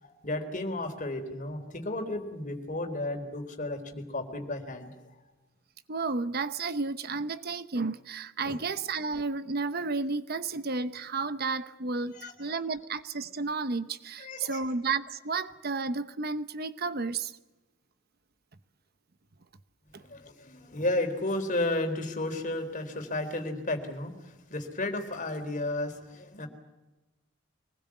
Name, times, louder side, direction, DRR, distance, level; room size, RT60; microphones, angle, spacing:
voice 1, 0.0-4.9 8.4-8.6 12.0-12.6 14.2-14.6 20.0-26.5, left 2 dB, 40° left, 3.8 m, -33 dB
voice 2, 5.9-17.3, right 4 dB, 50° right, 0.9 m, -32 dB
25.0 x 20.0 x 8.5 m
head